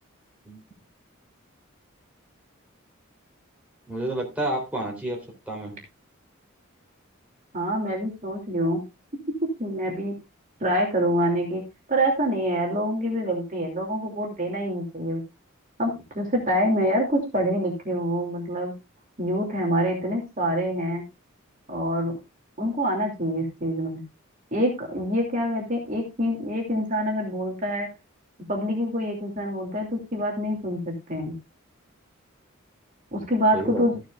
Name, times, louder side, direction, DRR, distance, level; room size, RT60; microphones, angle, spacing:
voice 1, 3.9-5.8 33.5-33.8, right 1 dB, 5° right, -1 dB, 3.6 m, -30 dB
voice 2, 7.5-8.8 9.6-10.2 10.6-11.6 11.9-15.2 15.8-18.7 19.2-21.0 21.7-22.1 22.6-24.0 24.5-27.9 28.5-31.3 33.1-33.9, equal, 35° right, 0 dB, 2.8 m, -26 dB
14.5 x 9.2 x 2.5 m, 0.24 s
head